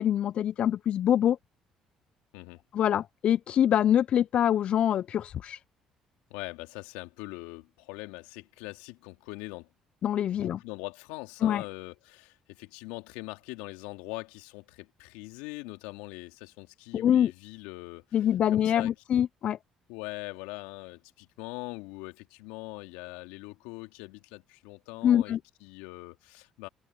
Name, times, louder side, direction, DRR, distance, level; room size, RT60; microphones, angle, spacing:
voice 1, 0.0-1.4 2.7-5.6 10.0-10.6 11.4-11.6 16.9-17.3 18.1-19.6 25.0-25.4, left 10 dB, 55° left, 0.8 m, -25 dB
voice 2, 6.3-9.7 10.3-18.9 19.9-26.7, left 24 dB, 75° left, 3.1 m, -42 dB
hypercardioid pair, 55°, 2 cm